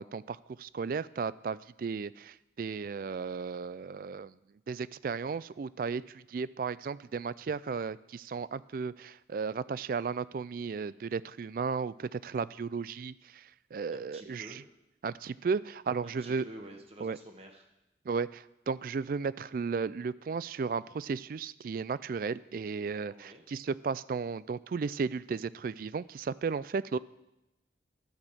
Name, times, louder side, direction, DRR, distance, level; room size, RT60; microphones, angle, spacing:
voice 1, 0.0-4.3 4.7-13.4 13.7-14.6 15.0-16.5 17.0-17.2 18.1-27.0, right 5 dB, 50° right, 19 dB, 0.3 m, -34 dB
voice 2, 13.9-14.6 16.0-17.7 23.1-23.4, right 1 dB, 35° right, 3 dB, 1.2 m, -49 dB
12.0 x 6.3 x 7.3 m, 0.93 s
head